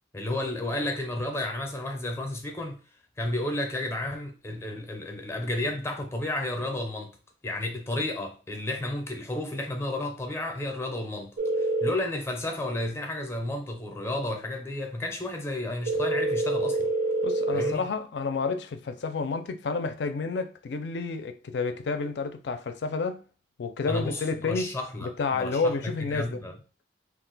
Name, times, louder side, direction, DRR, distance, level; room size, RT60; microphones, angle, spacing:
voice 1, 0.1-2.8 3.2-7.1 7.4-16.9 17.5-17.9 23.9-26.6, left 1 dB, 15° left, 0.5 m, -32 dB
sound 1, 11.4-11.9 15.9-17.7, right 1 dB, 55° right, 0.4 m, -26 dB
voice 2, 17.2-23.2 23.6-24.7 25.0-26.4, left 4 dB, 75° left, 0.4 m, -30 dB
2.4 x 2.2 x 3.9 m
head